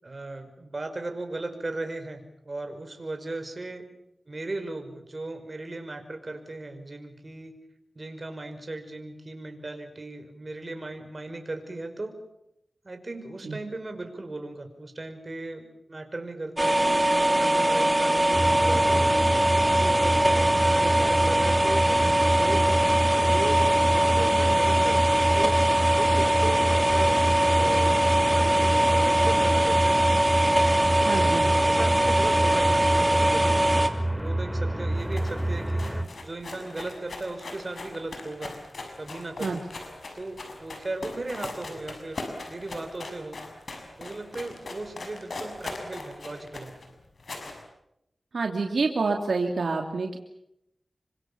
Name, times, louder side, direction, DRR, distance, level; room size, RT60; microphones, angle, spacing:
voice 1, 0.0-3.9 4.3-7.6 8.0-12.2 12.8-17.1 17.4-19.2 19.6-21.9 22.4-25.6 25.9-30.3 30.7-33.6 34.2-35.9 36.2-38.5 39.0-39.6 40.1-43.4 44.0-46.7, right 2 dB, 45° right, 6 dB, 5.4 m, -37 dB
sound 1, 16.6-33.9, right 1 dB, 15° right, 2.9 m, -22 dB
sound 2, 18.3-36.0, right 1 dB, ahead, 3.6 m, -28 dB
voice 2, 31.0-31.5 39.4-39.6 48.3-50.2, right 4 dB, 80° right, 3 dB, 2.7 m, -27 dB
sound 3, 31.7-34.3 34.6-34.7 34.9-47.6, left 2 dB, 75° left, 6.7 m, -40 dB
27.0 x 25.0 x 7.2 m, 0.82 s
wide cardioid pair, 55°, 0 cm